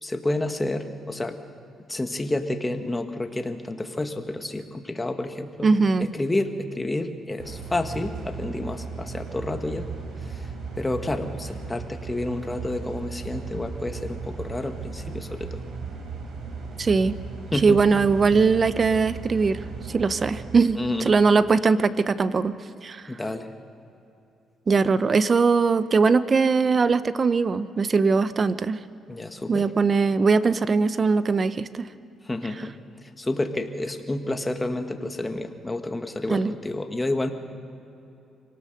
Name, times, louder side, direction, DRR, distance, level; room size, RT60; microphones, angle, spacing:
voice 1, 0.0-1.4 1.9-5.7 6.0-9.9 10.3-15.6 17.5-17.8 20.8-21.1 23.1-23.5 29.1-29.7 32.3-32.7 33.2-37.3, left 2 dB, 15° left, 6 dB, 1.7 m, -30 dB
voice 2, 5.6-6.1 16.8-17.1 17.6-19.6 19.9-20.8 21.0-22.5 22.8-23.0 24.7-28.8 29.5-31.9 36.3-36.5, right 4 dB, 40° right, 14 dB, 0.8 m, -20 dB
sound 1, 7.4-20.6, right 4 dB, 70° right, 4.3 m, -36 dB
25.0 x 18.5 x 6.6 m, 2.8 s
cardioid pair, 90°, 0 cm